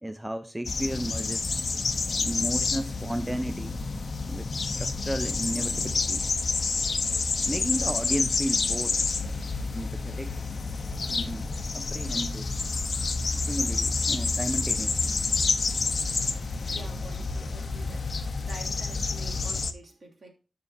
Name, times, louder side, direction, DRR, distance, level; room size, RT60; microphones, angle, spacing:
voice 1, 0.0-1.5 2.3-3.8 4.3-6.2 7.5-9.0 9.7-10.4 11.1-12.5 13.2-15.1, right 1 dB, 10° right, 0.5 m, -34 dB
sound 1, 0.6-19.7, left 4 dB, 60° left, 0.8 m, -29 dB
voice 2, 16.7-20.3, right 2 dB, 55° right, 2.9 m, -47 dB
14.5 x 5.8 x 2.7 m
wide cardioid pair, 135°, 0 cm